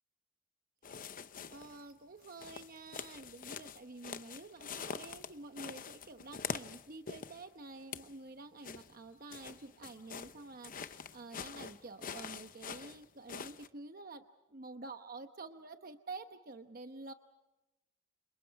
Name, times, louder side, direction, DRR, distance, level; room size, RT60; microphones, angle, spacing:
sound 1, 0.8-1.8 2.2-7.4 7.8-8.2 8.6-13.7, left 6 dB, 45° left, 0.8 m, -45 dB
voice 1, 1.5-17.1, right 3 dB, 50° right, 7 dB, 1.0 m, -49 dB
30.0 x 27.5 x 4.7 m, 1.0 s
head